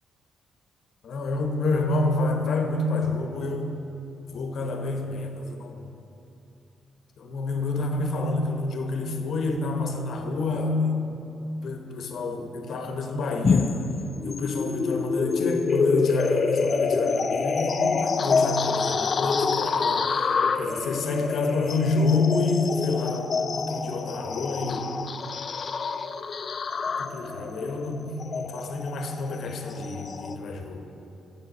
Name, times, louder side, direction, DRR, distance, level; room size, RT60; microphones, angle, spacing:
voice 1, 1.0-3.8 4.3-5.8 7.2-11.0 11.6-13.9 14.2-20.3 20.5-24.9 26.9-30.9, left 3 dB, 60° left, 4 dB, 0.9 m, -28 dB
sound 1, 13.4-30.4, left 5 dB, 45° left, 0.4 m, -26 dB
7.7 x 7.4 x 5.4 m, 2.9 s
cardioid pair, 90°, 0 cm